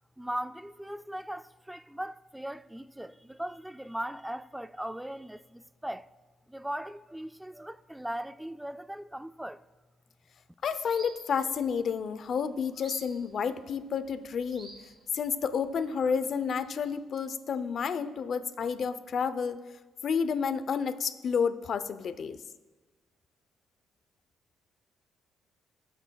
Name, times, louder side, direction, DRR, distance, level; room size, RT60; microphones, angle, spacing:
voice 1, 0.2-6.1 6.5-9.6, right 1 dB, 5° right, 0.4 m, -39 dB
voice 2, 10.6-14.7 15.1-19.6 20.0-22.4, left 6 dB, 55° left, 0.6 m, -30 dB
sound 1, 10.6-17.0, right 2 dB, 35° right, 2.7 m, -53 dB
20.0 x 8.0 x 2.3 m
cardioid pair, 90°, 0 cm